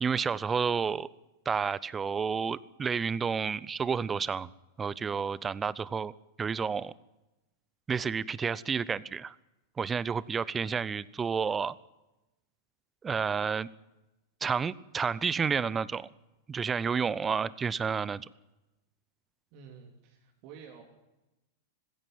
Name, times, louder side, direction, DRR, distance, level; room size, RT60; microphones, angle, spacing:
voice 1, 0.0-1.1 1.5-4.5 4.8-6.1 6.4-6.9 7.9-9.3 9.8-11.7 13.0-13.7 14.4-16.1 16.5-18.3, right 6 dB, 20° right, 21 dB, 0.8 m, -30 dB
voice 2, 19.5-20.8, right 6 dB, 50° right, 1 dB, 3.3 m, -50 dB
20.0 x 16.0 x 9.3 m, 0.99 s
figure-of-eight pair, 95°, 0 cm